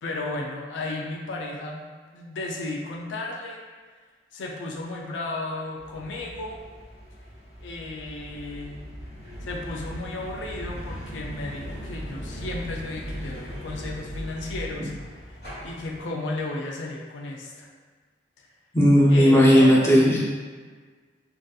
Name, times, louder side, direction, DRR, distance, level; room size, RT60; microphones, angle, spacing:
voice 1, 0.0-1.8 2.1-3.6 4.3-6.6 7.6-8.8 9.4-14.9 15.6-17.7 18.4-18.5 19.1-19.8, left 2 dB, 75° left, -1 dB, 0.4 m, -34 dB
sound 1, 5.8-16.0, equal, 60° left, 1.2 m, -38 dB
voice 2, 18.7-20.2, equal, 15° left, -6 dB, 0.5 m, -16 dB
2.5 x 2.4 x 2.4 m, 1.5 s
head